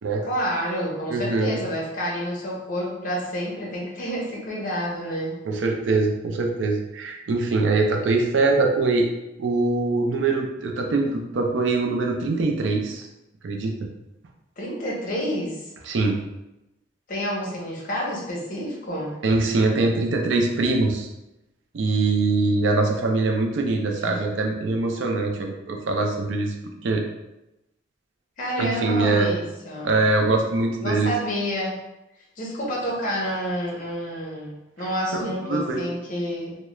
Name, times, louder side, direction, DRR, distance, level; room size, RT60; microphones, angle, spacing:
voice 1, 0.2-5.4 14.6-15.6 17.1-19.1 28.4-29.9 30.8-31.8 32.4-36.6, equal, 45° left, -3 dB, 0.7 m, -29 dB
voice 2, 1.1-1.6 5.4-9.1 9.4-13.1 13.4-13.7 15.8-16.2 19.2-21.1 21.7-26.5 26.8-27.0 28.6-29.3 29.8-31.1 35.1-35.9, right 3 dB, 80° right, 2 dB, 0.4 m, -23 dB
2.3 x 2.1 x 3.0 m, 0.94 s
head